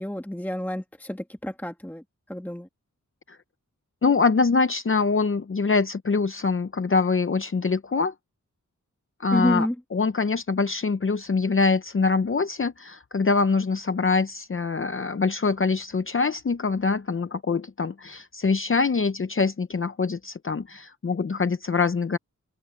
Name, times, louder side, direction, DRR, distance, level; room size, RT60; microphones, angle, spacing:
voice 1, 0.0-2.7 9.3-9.7, left 1 dB, 5° left, 1.4 m, -29 dB
voice 2, 4.0-8.1 9.2-22.2, left 4 dB, 40° left, 0.7 m, -24 dB
wide cardioid pair, 100°, 31 cm